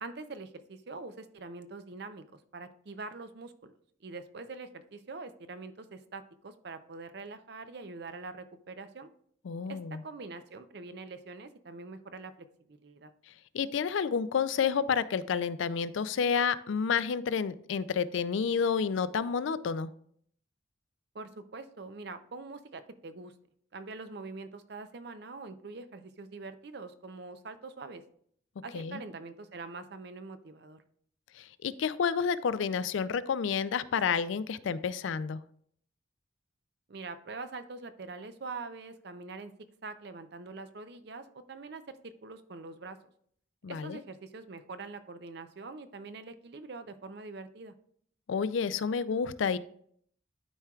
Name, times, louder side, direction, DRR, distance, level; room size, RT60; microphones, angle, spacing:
voice 1, 0.0-3.7 4.0-9.1 9.7-12.3 12.7-13.1 21.1-23.3 23.7-28.0 28.6-30.8 36.9-39.5 39.8-43.0 43.7-47.7, right 3 dB, 55° right, 10 dB, 0.5 m, -44 dB
voice 2, 9.5-10.0 13.5-19.9 28.7-29.0 31.4-35.4 43.6-44.0 48.3-49.6, left 6 dB, 75° left, 15 dB, 0.4 m, -30 dB
12.0 x 4.4 x 2.4 m, 0.64 s
head